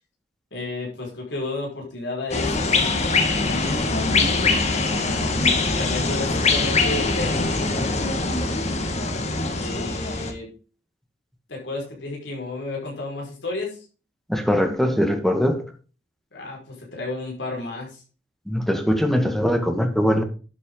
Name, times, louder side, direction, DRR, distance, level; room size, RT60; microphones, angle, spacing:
voice 1, 0.5-2.9 3.3-4.6 5.8-7.6 9.5-10.5 11.5-13.8 16.3-18.0, left 2 dB, 75° left, 5.5 m, -32 dB
sound 1, 2.3-10.3, left 3 dB, 35° left, 1.9 m, -23 dB
voice 2, 14.3-15.7 18.5-20.2, equal, ahead, 2.0 m, -21 dB
12.0 x 8.3 x 4.0 m
head